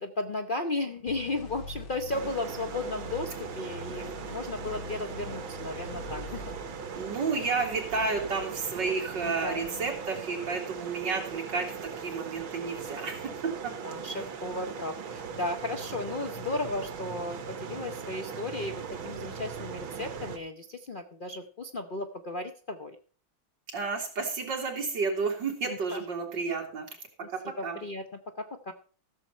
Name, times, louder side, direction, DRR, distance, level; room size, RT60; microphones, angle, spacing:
voice 1, 0.0-6.4 9.2-9.9 13.8-23.0 25.6-26.0 27.2-27.3 27.6-28.7, left 2 dB, 80° left, 6 dB, 0.4 m, -35 dB
sound 1, 1.1-7.5, left 3 dB, 60° left, 2.2 m, -44 dB
sound 2, 2.1-20.4, right 6 dB, 80° right, 2.2 m, -39 dB
voice 2, 6.9-13.7 23.7-26.9 27.3-27.8, right 4 dB, 60° right, 0 dB, 3.2 m, -31 dB
14.5 x 7.3 x 5.4 m, 0.42 s
omnidirectional pair, 2.2 m